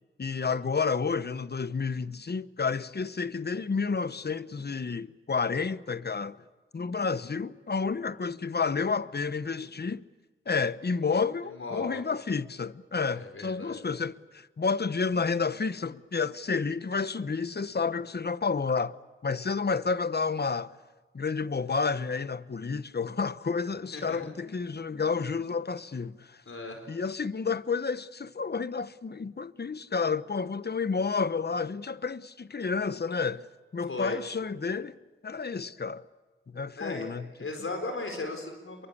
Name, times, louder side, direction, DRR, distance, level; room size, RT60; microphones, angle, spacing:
voice 1, 0.2-6.4 6.7-10.0 10.5-18.9 19.2-20.7 21.1-26.4 26.9-33.5 33.7-35.0 35.2-36.0 36.5-37.3, left 5 dB, 50° left, 1.0 m, -30 dB
voice 2, 11.4-12.0 13.2-13.9 23.9-24.3 26.5-26.9 33.9-34.2 36.8-38.9, left 2 dB, 80° left, 4.5 m, -37 dB
27.5 x 23.0 x 8.5 m
cardioid pair, 50°, 21 cm